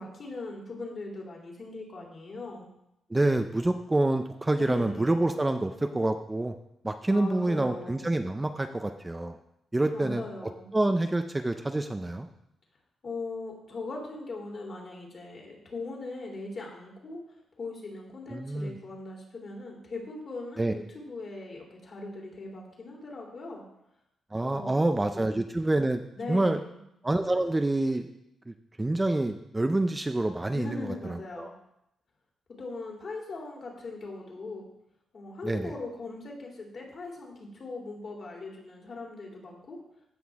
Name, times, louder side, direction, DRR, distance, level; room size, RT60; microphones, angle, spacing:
voice 1, 0.0-2.6 4.6-5.2 7.1-8.1 9.9-10.7 13.0-17.2 17.6-23.6 24.4-25.4 26.1-26.8 30.5-31.5 32.6-34.6 35.1-39.8, left 3 dB, 45° left, -1 dB, 3.0 m, -40 dB
voice 2, 3.1-6.5 6.8-9.4 9.7-12.3 18.3-18.7 20.6-20.7 24.3-26.0 26.3-26.6 27.0-28.1 28.5-31.5 35.4-35.7, right 2 dB, 15° right, 6 dB, 0.6 m, -27 dB
15.0 x 6.1 x 3.5 m, 0.81 s
cardioid pair, 110°, 0 cm